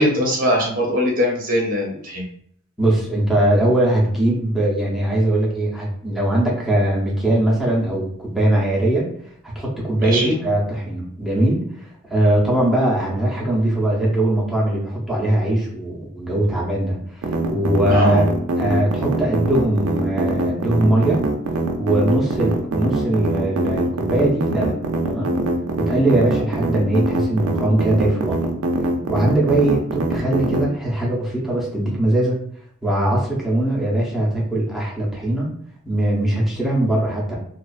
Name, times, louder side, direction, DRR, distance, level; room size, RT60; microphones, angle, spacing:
voice 1, 0.0-2.2 10.0-10.4 17.9-18.2, equal, 40° right, -1 dB, 0.8 m, -21 dB
voice 2, 2.8-9.1 9.4-18.3 18.6-21.2 21.8-24.8 25.0-25.4 25.8-28.4 29.1-32.4 32.8-35.5 35.9-37.4, right 1 dB, ahead, -6 dB, 0.7 m, -20 dB
sound 1, 17.2-30.6, right 2 dB, 70° right, 0.4 m, -23 dB
2.4 x 2.4 x 2.3 m, 0.65 s
head